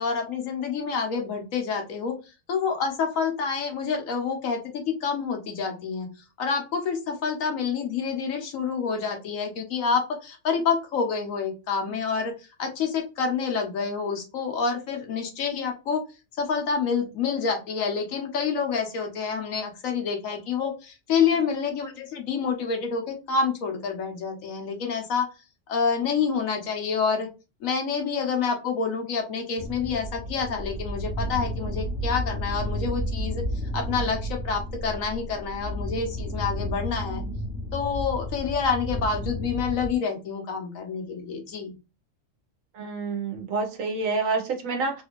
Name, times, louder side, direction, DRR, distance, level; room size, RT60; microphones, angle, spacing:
voice 1, 0.0-2.1 2.5-6.1 6.4-12.3 12.6-16.0 16.4-25.3 25.7-27.3 27.6-33.4 33.7-37.2 37.7-41.7, left 5 dB, 90° left, 4 dB, 1.3 m, -28 dB
sound 1, 29.6-40.0, equal, 65° left, 1.1 m, -32 dB
voice 2, 42.7-45.0, right 3 dB, 85° right, 3 dB, 1.3 m, -28 dB
3.4 x 2.4 x 3.0 m, 0.29 s
omnidirectional pair, 1.4 m